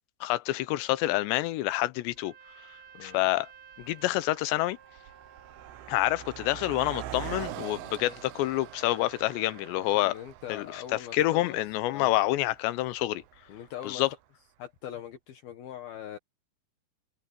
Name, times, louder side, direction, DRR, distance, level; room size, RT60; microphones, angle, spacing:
voice 1, 0.2-2.3 3.0-3.5 3.8-4.8 5.9-10.1 10.5-13.2 13.8-14.1, left 16 dB, 85° left, 3.0 m, -27 dB
Car passing by, 2.1-2.2 3.0-3.3 3.5-14.0, right 12 dB, 75° right, 2.7 m, -44 dB
Trumpet, 2.2-9.8, right 7 dB, 90° right, 5.9 m, -54 dB
voice 2, 9.9-11.6 11.9-12.1 13.5-14.2 14.6-16.2, left 10 dB, 65° left, 3.0 m, -42 dB
omnidirectional pair, 5.0 m